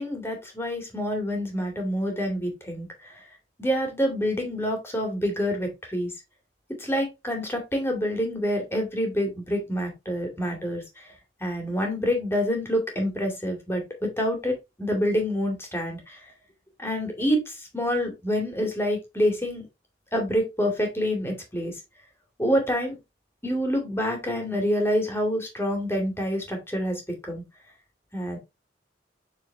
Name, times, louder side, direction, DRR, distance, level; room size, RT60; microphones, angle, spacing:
voice 1, 0.0-3.1 3.6-6.1 6.8-10.8 11.4-16.2 16.8-19.7 20.1-21.7 22.4-23.0 23.4-27.4 28.1-28.4, equal, 15° left, 2 dB, 2.4 m, -27 dB
7.5 x 4.4 x 3.4 m, 0.22 s
head